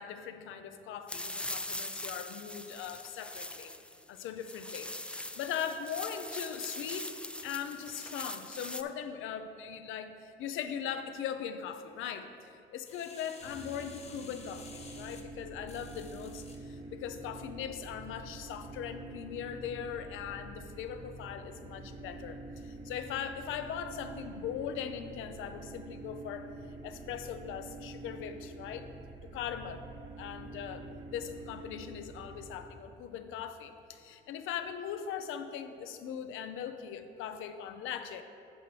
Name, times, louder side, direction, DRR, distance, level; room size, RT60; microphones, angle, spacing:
voice 1, 0.0-3.7 4.1-7.1 7.4-26.5 26.8-28.9 29.2-29.8 30.2-30.8 31.1-38.2, left 8 dB, 90° left, 9 dB, 0.6 m, -40 dB
sound 1, 1.1-8.8, left 1 dB, 5° left, 0.4 m, -41 dB
sound 2, 12.9-16.6 17.2-17.3, left 4 dB, 35° left, 1.0 m, -52 dB
sound 3, 13.4-32.6, right 2 dB, 65° right, 1.7 m, -47 dB
11.0 x 6.7 x 3.2 m, 2.5 s
cardioid pair, 90°, 20 cm